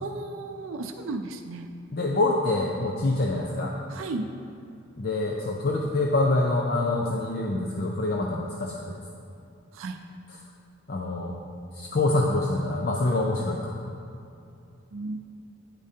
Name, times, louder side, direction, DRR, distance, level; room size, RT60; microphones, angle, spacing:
voice 1, 0.0-1.7 3.9-4.3 9.8-9.9 14.9-15.2, right 3 dB, 80° right, 5 dB, 0.5 m, -34 dB
voice 2, 1.9-3.8 5.0-9.0 10.3-10.4 10.9-11.3 11.7-13.7, left 2 dB, 50° left, -1 dB, 0.5 m, -26 dB
9.9 x 8.5 x 2.8 m, 2.6 s
head